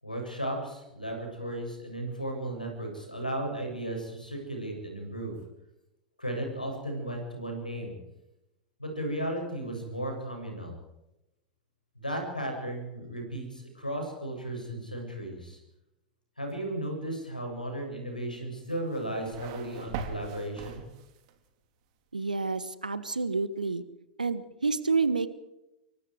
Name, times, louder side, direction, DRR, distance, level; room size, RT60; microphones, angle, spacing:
voice 1, 0.0-5.3 6.2-7.9 8.8-10.7 12.0-15.6 16.4-20.8, right 1 dB, 85° left, 3 dB, 7.5 m, -35 dB
sound 1, 18.7-21.4, right 6 dB, 50° right, 3.2 m, -41 dB
voice 2, 22.1-23.8 24.2-25.3, right 4 dB, 80° right, 15 dB, 1.6 m, -29 dB
26.0 x 23.0 x 4.9 m, 0.92 s
figure-of-eight pair, 90°, 4 cm